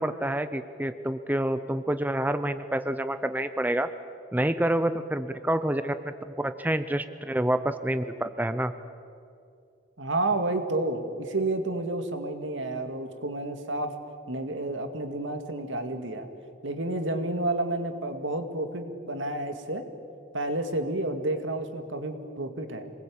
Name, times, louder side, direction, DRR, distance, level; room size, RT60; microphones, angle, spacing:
voice 1, 0.0-3.9 4.3-8.7, right 1 dB, 10° right, 10 dB, 0.6 m, -28 dB
voice 2, 10.0-13.9 14.3-16.3 16.6-19.8 20.3-22.9, right 2 dB, 75° right, 7 dB, 2.2 m, -30 dB
27.0 x 20.0 x 8.7 m, 2.6 s
head